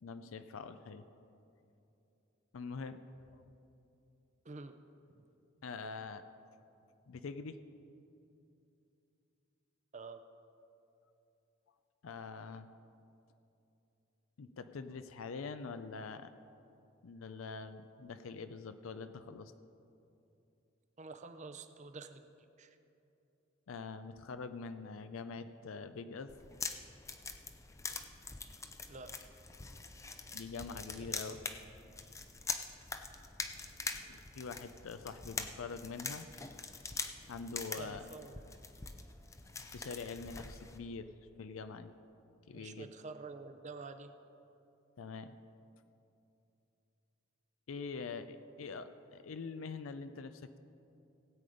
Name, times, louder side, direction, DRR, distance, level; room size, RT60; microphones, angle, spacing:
voice 1, 0.0-1.0 2.5-3.0 3.4-3.5 5.6-6.2 7.1-7.6 12.0-12.7 14.4-16.3 17.0-19.5 23.7-26.3 30.3-31.4 34.1-36.3 37.3-38.1 39.7-41.1 41.4-41.9 42.5-42.9 45.0-45.3 47.7-50.6, left 4 dB, 75° left, 10 dB, 0.5 m, -44 dB
voice 2, 9.9-10.2 21.0-22.3 22.6-22.8 28.9-29.2 31.0-31.5 37.8-38.4 42.5-44.1, right 4 dB, 35° right, 9 dB, 0.6 m, -48 dB
sound 1, 26.3-40.8, left 4 dB, 15° left, 0.5 m, -44 dB
17.0 x 8.5 x 5.0 m, 2.8 s
head